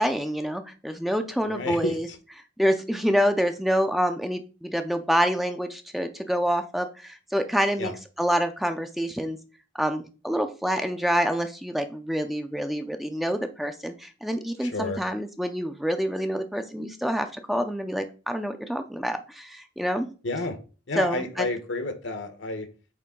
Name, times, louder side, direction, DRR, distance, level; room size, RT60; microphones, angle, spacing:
voice 1, 0.0-2.1 2.6-7.9 8.2-9.4 9.8-20.1 21.0-21.5, equal, ahead, 0.5 m, -27 dB
voice 2, 1.5-2.2 7.8-8.0 14.6-15.0 20.2-20.6 20.9-22.7, left 2 dB, 70° left, 1.1 m, -30 dB
8.5 x 3.3 x 3.7 m
head